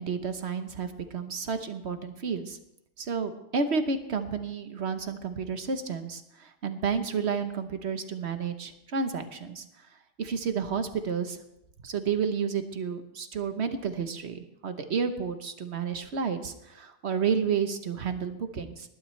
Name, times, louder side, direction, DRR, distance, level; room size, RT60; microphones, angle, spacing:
voice 1, 0.0-2.6 3.0-9.6 10.2-11.4 11.8-18.9, right 6 dB, 65° right, 8 dB, 1.3 m, -31 dB
20.0 x 12.0 x 3.3 m, 0.84 s
omnidirectional pair, 1.3 m